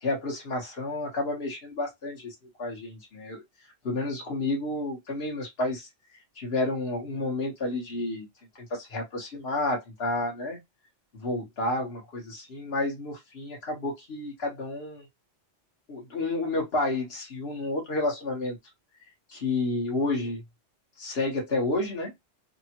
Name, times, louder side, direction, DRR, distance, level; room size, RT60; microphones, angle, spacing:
voice 1, 0.0-3.4 3.8-5.9 6.4-8.3 8.5-8.6 8.9-10.6 11.1-15.1 15.9-18.6 19.3-20.4 21.0-22.1, left 2 dB, 55° left, 1.4 m, -30 dB
3.4 x 2.1 x 2.9 m
omnidirectional pair, 1.3 m